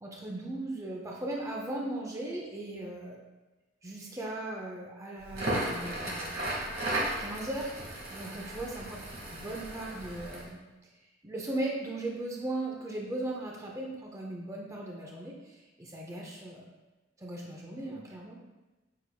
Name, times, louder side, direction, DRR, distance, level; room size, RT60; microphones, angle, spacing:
voice 1, 0.0-3.2 3.8-6.4 7.2-7.7 8.1-9.0 9.3-10.9 11.2-16.6 17.2-18.4, right 1 dB, 15° right, -2 dB, 0.5 m, -38 dB
Crackle, 5.2-10.5, right 1 dB, 50° right, 1.1 m, -35 dB
6.5 x 3.4 x 2.2 m, 1.1 s
head